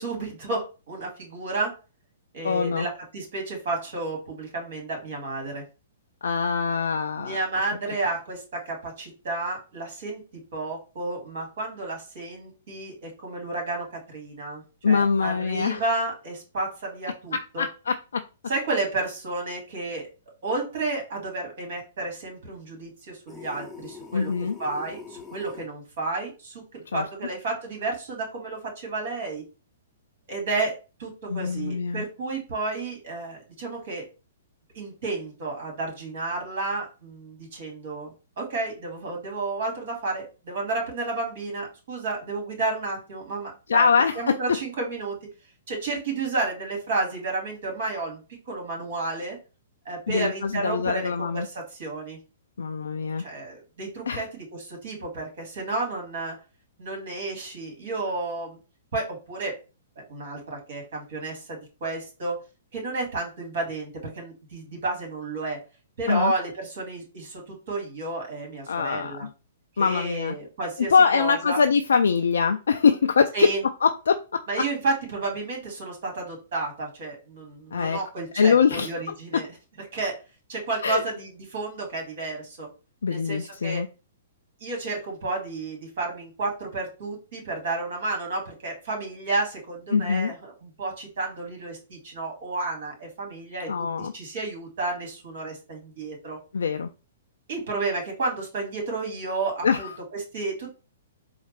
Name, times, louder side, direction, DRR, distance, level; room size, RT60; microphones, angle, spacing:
voice 1, 0.0-1.7 2.3-5.6 7.2-10.2 10.5-17.7 18.5-20.1 20.4-24.3 24.6-29.4 30.3-34.1 34.7-43.9 44.1-45.2 45.7-48.2 48.5-49.4 49.9-52.2 53.2-56.4 56.8-58.6 58.9-59.6 60.0-62.4 62.7-65.6 66.0-69.3 69.8-71.6 73.3-73.6 74.5-79.5 79.9-80.2 80.5-82.7 83.1-83.9 84.6-96.4 97.5-100.7, right 3 dB, 55° right, 1 dB, 2.0 m, -31 dB
voice 2, 2.4-2.9 6.2-7.4 14.8-15.8 17.3-18.2 24.1-24.6 26.9-27.0 31.3-32.0 43.7-44.6 50.1-51.5 52.6-53.2 54.1-54.2 66.1-66.3 68.7-69.3 69.8-70.3 70.9-73.5 73.8-74.4 77.7-78.0 78.3-78.9 80.8-81.0 83.0-83.9 89.9-90.3 93.6-94.1 96.5-96.9 99.6-99.9, left 5 dB, 70° left, 6 dB, 0.3 m, -23 dB
sound 1, 23.3-25.7, left 5 dB, 5° left, 0.7 m, -43 dB
4.2 x 2.3 x 3.2 m, 0.32 s
figure-of-eight pair, 120°, 0 cm